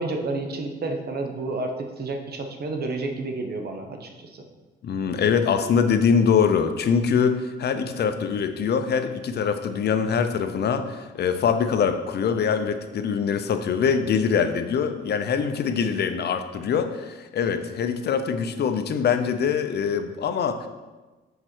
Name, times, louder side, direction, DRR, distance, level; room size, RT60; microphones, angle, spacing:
voice 1, 0.0-4.4, right 2 dB, 55° right, 4 dB, 1.0 m, -30 dB
voice 2, 4.8-20.7, left 6 dB, 55° left, 8 dB, 0.6 m, -23 dB
6.5 x 4.4 x 4.5 m, 1.2 s
cardioid pair, 90°, 20 cm